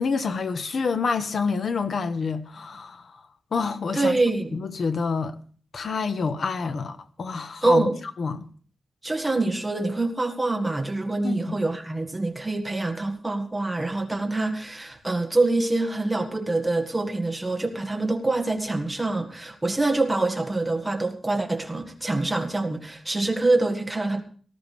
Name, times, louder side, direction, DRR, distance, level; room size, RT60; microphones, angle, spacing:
voice 1, 0.0-3.2 3.5-4.1 4.5-5.4 5.7-7.9 8.2-8.5 11.2-11.6, left 5 dB, 55° left, 1.1 m, -27 dB
voice 2, 3.9-4.6 7.6-8.0 9.0-24.2, right 2 dB, 10° right, 1.7 m, -25 dB
18.5 x 13.5 x 3.4 m
wide cardioid pair, 160°, 0 cm